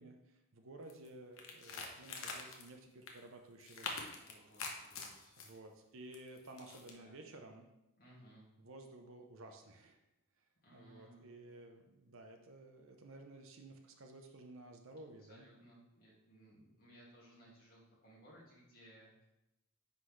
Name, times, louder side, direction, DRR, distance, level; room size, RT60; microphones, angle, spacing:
voice 1, 0.0-3.9 5.4-7.7 8.6-10.0 10.7-15.5, right 2 dB, 65° right, 4 dB, 0.7 m, -54 dB
sound 1, 0.9-1.1 1.4-2.7 3.1-3.2 3.6-5.5 6.1-6.9, left 4 dB, 65° left, 0.9 m, -45 dB
voice 2, 4.2-5.3 6.7-7.2 8.0-8.5 10.6-11.6 15.3-19.3, right 1 dB, 45° left, -6 dB, 2.3 m, -61 dB
9.7 x 4.0 x 3.2 m, 0.92 s
head